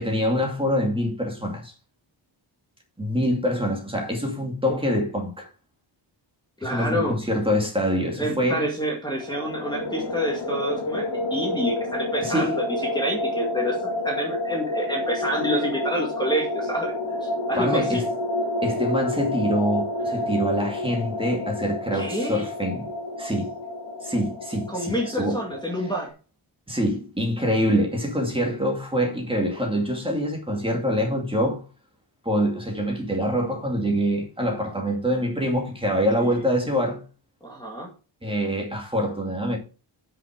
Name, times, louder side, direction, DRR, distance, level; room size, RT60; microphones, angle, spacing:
voice 1, 0.0-1.7 3.0-5.5 6.6-8.6 12.2-12.5 17.6-18.0 18.6-22.9 23.2-23.5 24.0-25.4 26.7-31.6 32.2-37.0 38.2-39.6, equal, 10° right, 2.4 m, -25 dB
voice 2, 6.6-7.2 8.2-16.9 17.2-18.1 21.9-22.5 24.7-26.1 28.3-28.5 36.2-36.4 37.4-37.9, equal, 10° left, 2.1 m, -28 dB
sound 1, 9.2-26.1, left 1 dB, 60° left, 2.3 m, -29 dB
9.7 x 6.0 x 4.9 m
wide cardioid pair, 175°, 49 cm